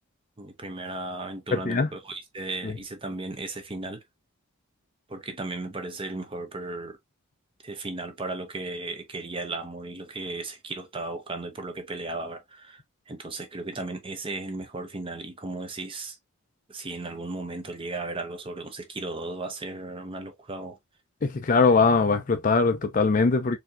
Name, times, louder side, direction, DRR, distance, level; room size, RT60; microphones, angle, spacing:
voice 1, 0.4-4.0 5.1-7.0 7.6-16.2 16.7-20.8, right 2 dB, 25° right, 0.7 m, -35 dB
voice 2, 1.5-1.9 2.6-2.7 21.2-23.6, left 4 dB, 40° left, 0.4 m, -21 dB
4.3 x 2.7 x 2.4 m
head